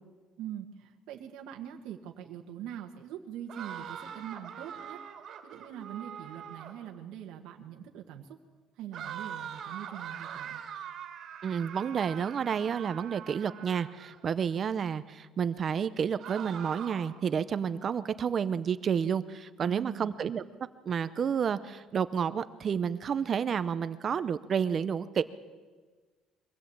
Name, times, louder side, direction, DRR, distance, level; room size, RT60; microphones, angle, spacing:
voice 1, 0.4-5.0 5.4-8.4 8.7-10.6 19.6-20.2, right 10 dB, 80° right, 2 dB, 1.6 m, -43 dB
sound 1, 3.5-6.9 8.9-14.2 16.2-17.2, right 8 dB, 45° right, 2.6 m, -43 dB
voice 2, 11.4-20.4 20.8-25.2, right 7 dB, 30° right, 13 dB, 0.6 m, -30 dB
23.0 x 17.0 x 8.7 m, 1.4 s
cardioid pair, 170°, 0 cm